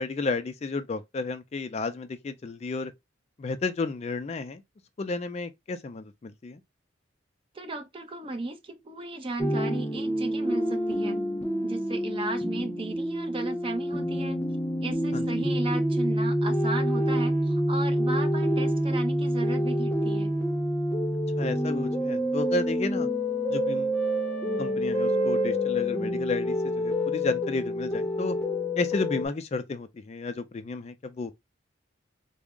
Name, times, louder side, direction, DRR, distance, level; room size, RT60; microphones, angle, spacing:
voice 1, 0.0-2.9 3.4-4.6 5.0-6.6 15.1-15.3 21.4-23.1 23.5-23.9 24.6-28.4 28.8-31.3, left 3 dB, 35° left, 0.3 m, -32 dB
voice 2, 7.5-11.2 11.6-14.4 14.8-20.3, right 2 dB, 30° right, 0.6 m, -35 dB
sound 1, 9.4-29.3, equal, 10° left, 0.7 m, -27 dB
3.5 x 2.1 x 3.6 m
head